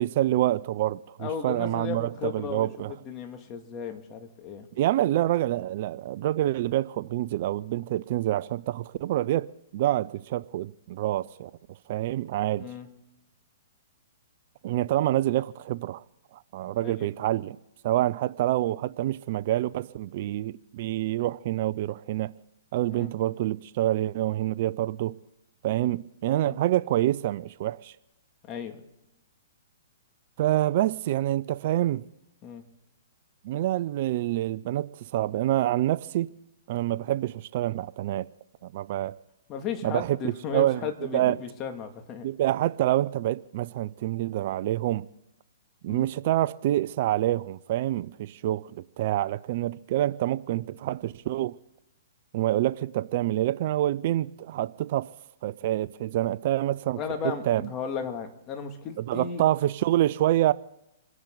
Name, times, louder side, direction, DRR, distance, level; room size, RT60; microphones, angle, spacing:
voice 1, 0.0-2.9 4.8-11.5 11.9-12.7 14.6-16.0 16.5-17.6 17.8-22.3 22.7-25.2 25.6-27.9 30.4-32.0 33.4-36.3 36.7-38.3 38.6-39.2 39.8-41.4 42.2-45.1 45.8-51.6 52.3-55.1 55.4-57.6 59.0-60.5, right 14 dB, 50° right, 0.5 m, -27 dB
voice 2, 1.2-2.7 3.0-4.7 12.6-12.9 16.8-17.1 22.9-23.1 26.4-26.6 28.5-28.8 32.4-32.6 39.5-42.3 45.9-46.1 56.9-59.4, left 7 dB, 30° left, 2.4 m, -35 dB
27.5 x 11.0 x 4.0 m
hypercardioid pair, 140°, 0 cm